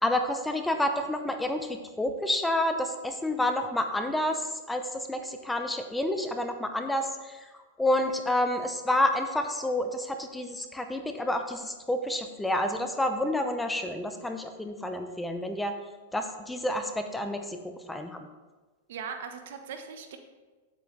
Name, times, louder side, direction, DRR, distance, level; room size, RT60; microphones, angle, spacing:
voice 1, 0.0-7.4 7.8-15.7 16.1-18.3, left 1 dB, 5° left, 6 dB, 0.7 m, -29 dB
voice 2, 18.9-20.2, right 6 dB, 70° right, 6 dB, 1.1 m, -39 dB
9.1 x 8.1 x 3.3 m, 1.3 s
hypercardioid pair, 125°, 0 cm